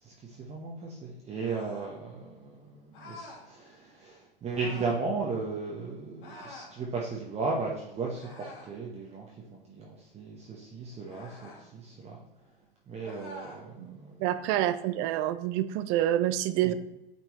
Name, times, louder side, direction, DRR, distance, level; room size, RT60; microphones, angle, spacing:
voice 1, 0.0-9.3 9.5-12.2 12.9-14.2 16.6-16.7, right 4 dB, 20° right, -3 dB, 1.0 m, -36 dB
sound 1, 1.4-2.0 2.9-3.5 4.5-5.0 6.2-6.7 8.1-8.8 11.1-11.6 13.0-13.6, left 1 dB, 65° left, 2.3 m, -46 dB
voice 2, 13.8-16.7, right 13 dB, 40° right, 12 dB, 0.5 m, -28 dB
8.8 x 4.4 x 3.1 m, 0.91 s
hypercardioid pair, 105°, 29 cm